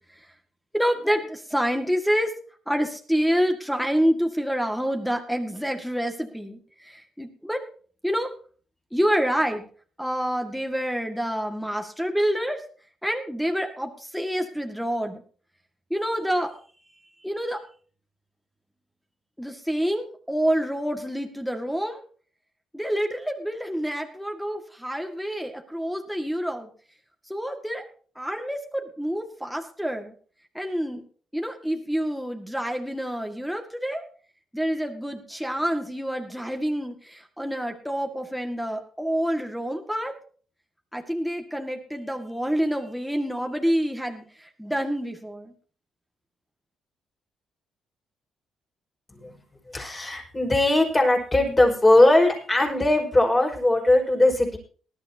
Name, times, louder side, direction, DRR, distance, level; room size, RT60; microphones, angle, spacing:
voice 1, 0.7-2.3 2.7-6.6 6.9-7.6 8.0-8.3 8.9-9.6 10.0-12.6 13.0-15.2 15.9-16.5 17.2-17.6 19.4-22.0 22.7-26.7 27.3-27.8 28.2-30.1 30.6-31.0 31.3-34.0 34.5-40.1 40.9-44.2 44.6-45.5, equal, ahead, 5 dB, 2.0 m, -27 dB
voice 2, 49.7-54.6, left 2 dB, 20° left, 1 dB, 5.2 m, -20 dB
19.5 x 12.0 x 2.9 m, 0.42 s
cardioid pair, 90°, 0 cm